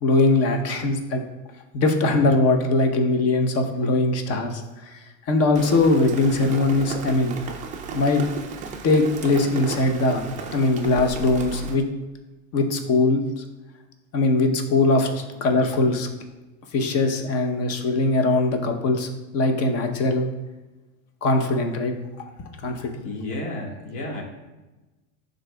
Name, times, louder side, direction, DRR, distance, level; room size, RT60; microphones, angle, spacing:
voice 1, 0.0-1.2 1.7-5.0 5.3-7.3 7.9-8.2 8.8-10.3 10.5-11.9 12.5-13.4 14.1-16.1 16.7-20.3 21.2-21.9 22.6-23.0, left 2 dB, 40° left, 5 dB, 0.8 m, -21 dB
Rain, 5.5-11.8, right 6 dB, 20° right, 0.4 m, -35 dB
voice 2, 23.0-24.2, left 1 dB, 70° left, 0 dB, 1.7 m, -32 dB
11.0 x 3.9 x 2.3 m, 1.1 s
supercardioid pair, 140°, 39 cm